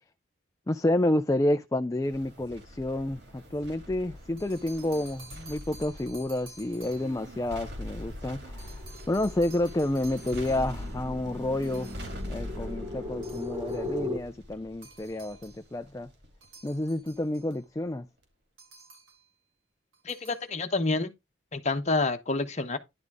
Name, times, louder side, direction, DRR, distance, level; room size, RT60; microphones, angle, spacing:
voice 1, 0.7-11.9 12.3-16.1 16.6-18.1, left 1 dB, 15° left, 0.4 m, -29 dB
sound 1, 2.0-17.5 17.9-18.0, left 1 dB, 55° right, 3.3 m, -43 dB
sound 2, 4.2-7.3 8.6-11.0 11.6-12.3 13.2-13.9 14.8-15.7 16.4-17.6 18.6-19.3 19.9-20.5, right 3 dB, 85° right, 4.9 m, -52 dB
sound 3, 5.3-14.2, left 2 dB, 20° right, 1.1 m, -40 dB
voice 2, 20.0-21.1 21.5-22.8, left 3 dB, 35° left, 1.1 m, -28 dB
11.0 x 4.0 x 4.8 m
head